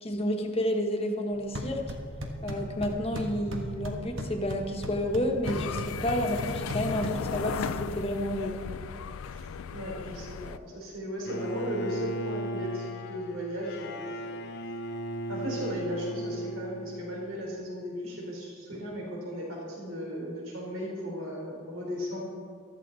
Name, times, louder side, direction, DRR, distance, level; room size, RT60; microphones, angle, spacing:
voice 1, 0.0-1.8 2.4-8.7, equal, 30° left, 2 dB, 1.3 m, -30 dB
sound 1, 1.3-8.3, equal, 65° right, 1.5 m, -38 dB
sound 2, 5.4-10.6, left 6 dB, 85° left, 0.4 m, -36 dB
voice 2, 9.3-14.1 15.3-22.2, equal, 80° right, -2 dB, 3.9 m, -36 dB
Bowed string instrument, 11.3-17.4, right 1 dB, 55° left, 0.8 m, -36 dB
15.0 x 13.0 x 4.1 m, 2.1 s
head